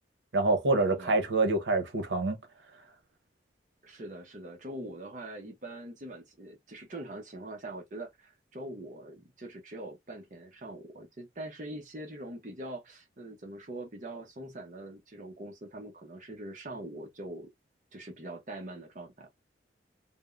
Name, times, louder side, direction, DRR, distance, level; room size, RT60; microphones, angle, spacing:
voice 1, 0.3-2.4, right 2 dB, 85° right, 0.8 m, -26 dB
voice 2, 0.9-1.3 3.8-17.5 17.9-19.3, right 1 dB, 45° right, 0.7 m, -43 dB
3.4 x 2.0 x 2.3 m
head